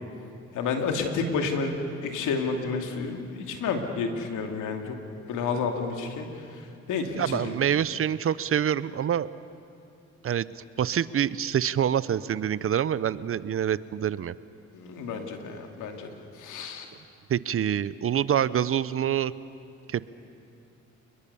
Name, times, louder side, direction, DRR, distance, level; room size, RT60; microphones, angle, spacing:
voice 1, 0.5-1.8 2.0-5.0 5.3-6.3 6.9-7.5 14.7-16.1 16.4-16.9, left 5 dB, 85° left, 4 dB, 2.6 m, -30 dB
voice 2, 7.2-9.3 10.2-14.3 17.3-19.3 19.9-20.0, right 9 dB, 45° right, 17 dB, 0.7 m, -26 dB
28.5 x 21.0 x 7.0 m, 2.5 s
cardioid pair, 90°, 30 cm